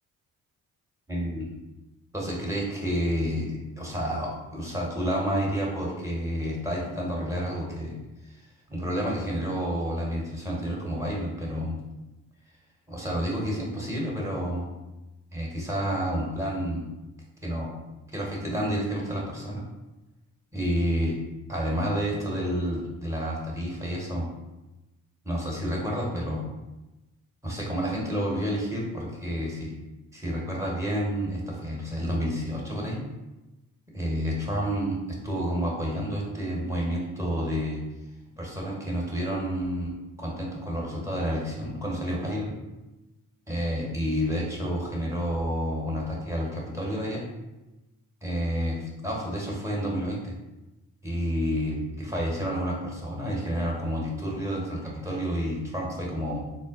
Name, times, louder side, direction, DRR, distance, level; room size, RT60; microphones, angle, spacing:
voice 1, 1.1-1.5 2.1-7.9 8.3-8.4 8.7-11.8 12.9-14.7 15.3-16.8 17.4-17.7 18.1-19.6 20.5-21.2 21.5-24.3 25.2-26.4 27.4-29.7 30.1-33.0 33.9-37.8 38.4-39.9 40.2-42.5 43.5-47.2 48.2-50.4 51.0-56.4, equal, 10° right, -3 dB, 1.1 m, -29 dB
3.8 x 2.1 x 2.4 m, 1.0 s
hypercardioid pair, 45°, 39 cm